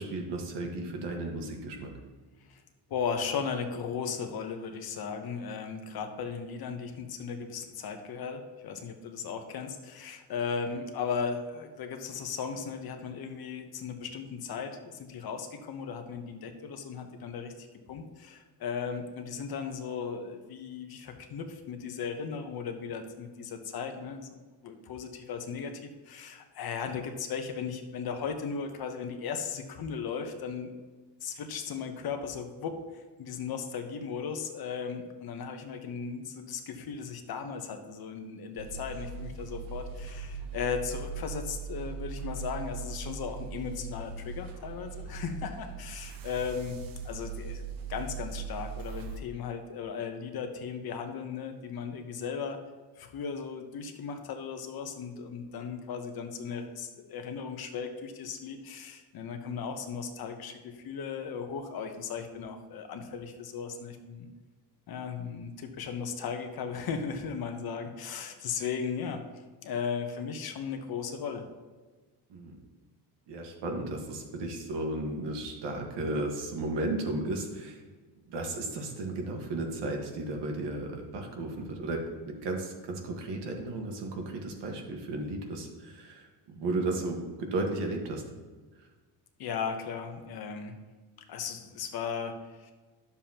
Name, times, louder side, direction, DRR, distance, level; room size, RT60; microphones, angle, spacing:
voice 1, 0.0-1.9 72.3-72.6 73.3-77.8 78.3-88.2, right 2 dB, 75° right, 2 dB, 1.6 m, -34 dB
voice 2, 2.9-30.7 31.2-46.8 47.0-47.6 47.9-52.6 53.0-64.3 64.9-69.2 69.6-71.4 89.4-90.8 91.3-92.7, left 6 dB, 60° left, 5 dB, 1.0 m, -36 dB
sound 1, 38.6-49.2, right 5 dB, 55° right, 0.8 m, -40 dB
10.5 x 7.0 x 2.9 m, 1.3 s
cardioid pair, 135°, 42 cm